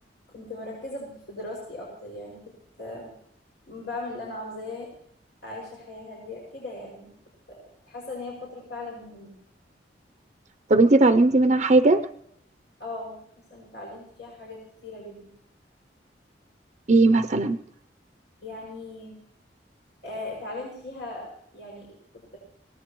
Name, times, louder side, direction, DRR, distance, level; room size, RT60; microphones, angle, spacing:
voice 1, 0.3-2.5 2.8-3.1 3.6-4.9 5.4-7.1 7.5-7.6 7.8-9.4 12.8-15.3 18.4-19.1 20.0-22.0, left 2 dB, 80° left, -4 dB, 6.1 m, -38 dB
voice 2, 10.7-12.0 16.9-17.6, right 2 dB, 40° right, 8 dB, 0.6 m, -18 dB
23.5 x 18.5 x 3.1 m, 0.70 s
head